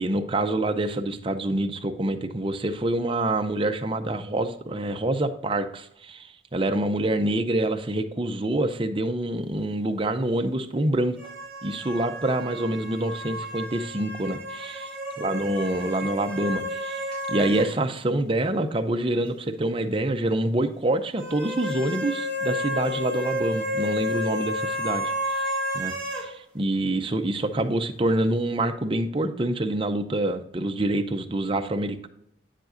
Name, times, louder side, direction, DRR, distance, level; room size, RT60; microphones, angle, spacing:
voice 1, 0.0-11.2 11.6-14.9 15.2-32.1, right 1 dB, 25° right, 6 dB, 0.6 m, -26 dB
sound 1, 11.2-17.7 18.0-18.1 21.2-26.3, left 1 dB, 5° left, 2.6 m, -31 dB
9.2 x 7.5 x 2.6 m, 0.74 s
head